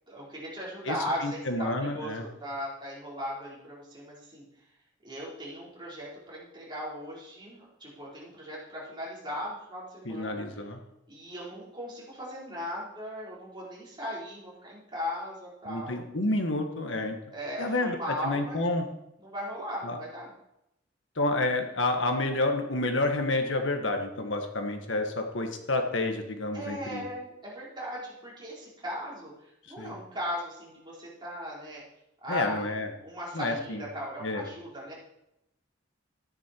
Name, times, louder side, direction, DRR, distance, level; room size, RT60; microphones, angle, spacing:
voice 1, 0.1-4.4 5.0-10.5 11.1-16.0 17.3-18.6 19.2-20.3 26.5-29.3 29.7-31.8 32.2-32.8 33.0-34.9, equal, 25° right, -6 dB, 4.5 m, -38 dB
voice 2, 1.2-2.2 10.0-10.8 15.6-17.2 17.6-18.8 19.8-20.0 21.2-27.1 29.8-29.9 32.3-32.9 33.3-33.8 34.2-34.4, left 2 dB, 85° left, 5 dB, 1.6 m, -29 dB
13.5 x 9.9 x 4.6 m, 0.86 s
head